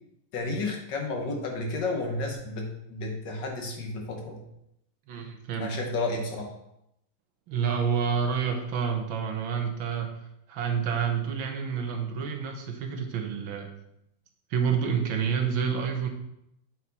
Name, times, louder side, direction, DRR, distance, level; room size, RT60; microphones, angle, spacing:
voice 1, 0.3-4.4 5.6-6.5, left 2 dB, 70° left, 1 dB, 1.8 m, -32 dB
voice 2, 5.1-5.8 7.5-10.1 10.5-13.7 14.5-16.1, right 6 dB, 85° right, 4 dB, 1.7 m, -28 dB
8.0 x 4.5 x 4.1 m, 0.80 s
omnidirectional pair, 2.1 m